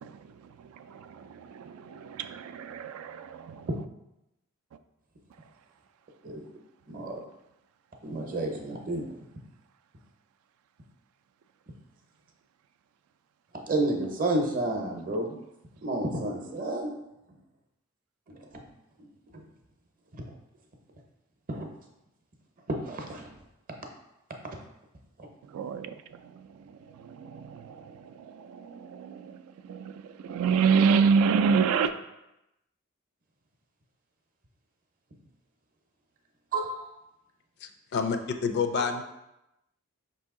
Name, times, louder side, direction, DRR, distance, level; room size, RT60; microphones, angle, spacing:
voice 1, 0.0-3.7 25.5-26.6 26.9-31.9, right 6 dB, 80° right, 0.3 m, -28 dB
voice 2, 6.9-7.2 8.0-9.1 13.7-15.4 15.8-16.9 18.3-18.6 19.3-19.4 21.5-21.7 22.7-23.3 25.2-25.3 36.5-36.9 38.8-38.9, right 2 dB, 40° right, 0.6 m, -30 dB
voice 3, 37.6-39.0, left 5 dB, 50° left, 0.4 m, -29 dB
5.3 x 2.7 x 3.6 m
head